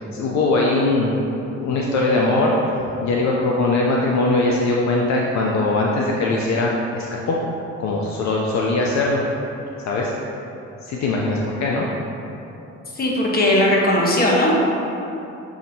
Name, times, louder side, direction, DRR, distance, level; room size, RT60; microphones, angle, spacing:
voice 1, 0.1-1.1 1.5-2.5 3.0-7.4 7.8-9.2 9.8-10.1 10.8-11.9, left 2 dB, 65° left, -2 dB, 0.5 m, -21 dB
voice 2, 13.0-14.6, left 1 dB, 30° left, -4 dB, 1.0 m, -18 dB
7.0 x 2.8 x 2.7 m, 2.9 s
cardioid pair, 90°, 30 cm